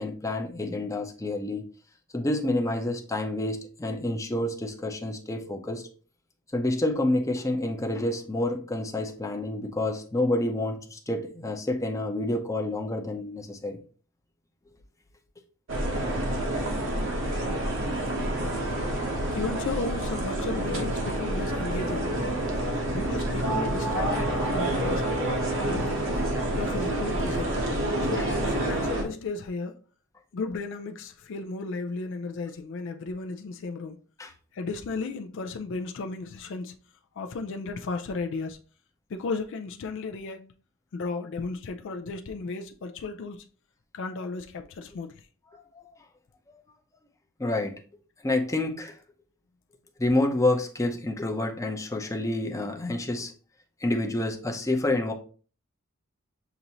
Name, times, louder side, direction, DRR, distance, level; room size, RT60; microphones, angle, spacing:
voice 1, 0.0-1.7 2.1-5.9 6.5-13.8 16.5-16.9 17.1-17.4 28.2-28.3 34.2-34.3 45.5-45.9 47.4-47.7 48.2-49.0 50.0-53.3 53.8-55.1, left 2 dB, 15° left, 0.7 m, -28 dB
sound 1, 15.7-29.0, right 1 dB, 65° right, 1.0 m, -28 dB
voice 2, 19.3-22.1 22.9-26.2 26.5-27.6 28.0-29.8 30.3-34.0 34.5-36.8 37.1-38.6 39.1-40.6 40.9-43.5 43.9-45.3, left 3 dB, 60° left, 0.4 m, -34 dB
6.8 x 2.6 x 2.9 m
head